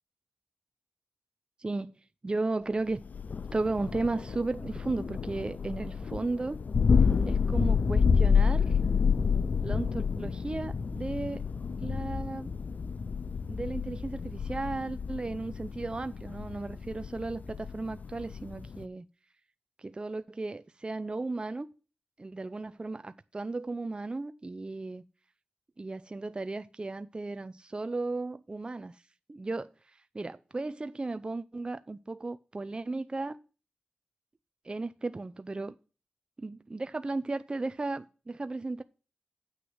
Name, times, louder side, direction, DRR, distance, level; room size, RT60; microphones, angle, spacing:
voice 1, 1.6-3.0 3.5-6.6 7.2-8.8 9.6-11.4 11.8-12.5 13.5-19.1 19.8-21.7 22.2-25.0 25.8-29.0 29.3-33.4 34.6-35.7 36.4-38.8, right 3 dB, 30° right, 0.6 m, -35 dB
Thunder, 3.1-18.8, left 5 dB, 60° left, 0.5 m, -29 dB
8.1 x 6.3 x 7.7 m
wide cardioid pair, 70°, 3 cm